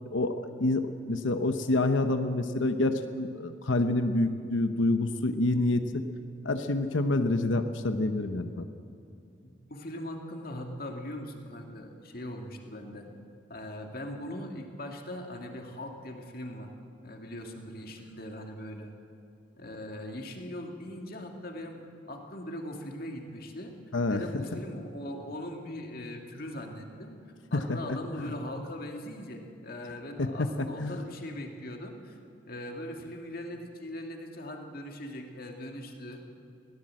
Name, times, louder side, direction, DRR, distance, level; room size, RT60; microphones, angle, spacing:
voice 1, 0.1-6.0 6.4-8.7 23.9-24.2 27.5-28.3 30.2-31.0, left 2 dB, 75° left, 8 dB, 0.9 m, -28 dB
voice 2, 9.4-13.1 13.5-16.7 17.0-18.9 19.6-23.7 24.1-27.2 27.5-32.2 32.5-36.2, left 1 dB, 50° left, 3 dB, 2.2 m, -40 dB
21.5 x 17.0 x 7.7 m, 2.4 s
head